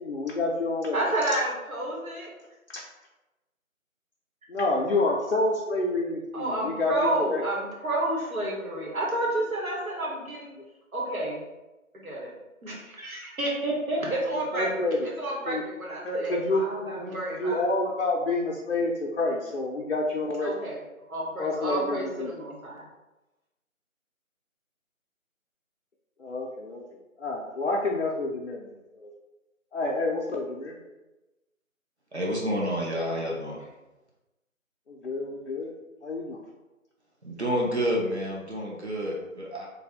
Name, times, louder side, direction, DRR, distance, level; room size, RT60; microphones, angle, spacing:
voice 1, 0.0-1.0 2.7-2.8 4.5-7.4 14.5-15.1 15.5-15.6 16.0-16.6 17.0-20.7 21.4-22.3 26.2-26.8 27.2-29.1 29.7-30.7 34.9-35.7 36.0-36.4, left 2 dB, 55° left, -2 dB, 0.5 m, -28 dB
voice 2, 0.9-2.3 6.3-10.5 10.9-11.4 11.9-12.3 12.6-17.6 20.4-20.8 21.1-22.8, right 1 dB, 85° right, -4 dB, 1.4 m, -30 dB
voice 3, 32.1-33.7 37.2-39.7, equal, 55° right, -3 dB, 0.7 m, -29 dB
3.3 x 2.2 x 3.5 m, 1.1 s
figure-of-eight pair, 170°, 41 cm